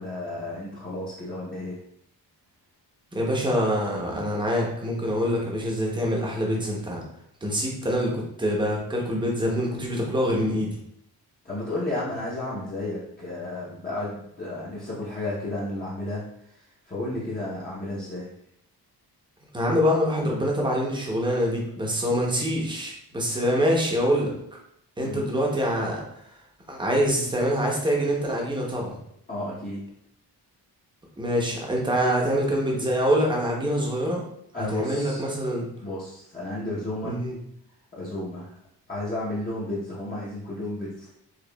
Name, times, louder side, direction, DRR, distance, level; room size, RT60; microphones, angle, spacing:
voice 1, 0.0-1.8 11.4-18.3 25.0-25.2 29.3-29.9 34.5-35.2 35.8-37.2 37.9-38.5 38.9-41.1, left 2 dB, 25° left, -9 dB, 0.8 m, -32 dB
voice 2, 3.1-7.0 7.4-10.8 19.5-24.3 25.0-26.0 26.7-28.9 31.2-34.2 34.7-35.6 37.0-37.4, equal, 10° right, -2 dB, 0.8 m, -25 dB
4.9 x 2.4 x 2.2 m, 0.73 s
wide cardioid pair, 135°, 39 cm